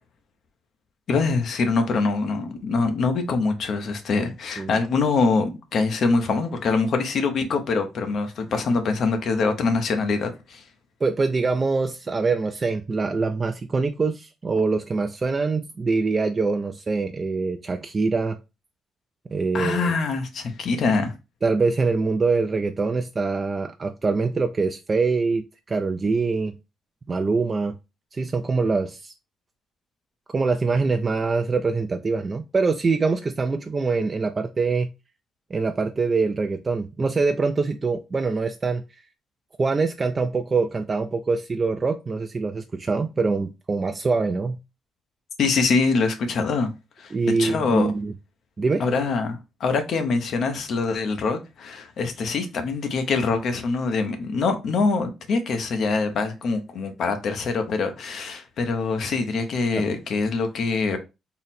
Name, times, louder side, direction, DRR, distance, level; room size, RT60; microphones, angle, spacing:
voice 1, 1.1-10.6 19.5-21.1 45.4-46.7 47.0-47.1 47.4-47.9 48.8-61.0, left 4 dB, 65° left, 0.8 m, -24 dB
voice 2, 11.0-18.4 19.3-19.9 21.4-26.5 27.1-27.7 28.1-29.1 30.3-34.9 35.5-38.8 39.6-44.6 47.1-48.1 48.6-48.8 59.7-59.8, right 4 dB, 35° right, 0.4 m, -24 dB
3.9 x 2.0 x 4.1 m
cardioid pair, 90°, 0 cm